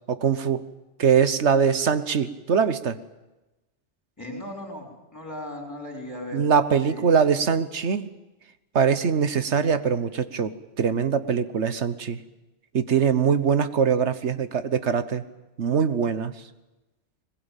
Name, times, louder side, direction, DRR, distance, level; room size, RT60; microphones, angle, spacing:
voice 1, 0.1-0.6 1.0-3.0 6.3-8.1 8.7-10.5 10.8-12.2 12.7-15.2 15.6-16.3, right 6 dB, 75° right, 13 dB, 1.4 m, -22 dB
voice 2, 4.2-6.4 6.8-7.0, left 1 dB, 15° left, 2 dB, 6.0 m, -37 dB
21.5 x 21.5 x 9.1 m, 1.0 s
omnidirectional pair, 1.2 m